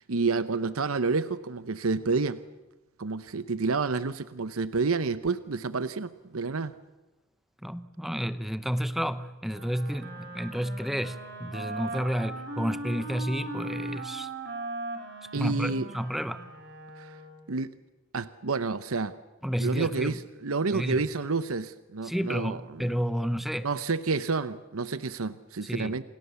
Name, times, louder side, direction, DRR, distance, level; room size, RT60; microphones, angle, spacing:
voice 1, 0.0-2.4 3.0-6.7 15.3-15.9 17.0-17.1 17.5-17.7 18.1-19.1 19.6-22.9 23.6-26.0, right 4 dB, 75° right, 14 dB, 0.9 m, -29 dB
voice 2, 7.6-14.3 15.3-16.5 19.4-20.2 20.7-21.0 22.0-23.7 25.6-26.0, equal, ahead, 13 dB, 0.9 m, -31 dB
Wind instrument woodwind instrument, 9.5-17.5, right 2 dB, 55° right, 4.6 m, -39 dB
28.5 x 27.5 x 7.0 m, 1.1 s
head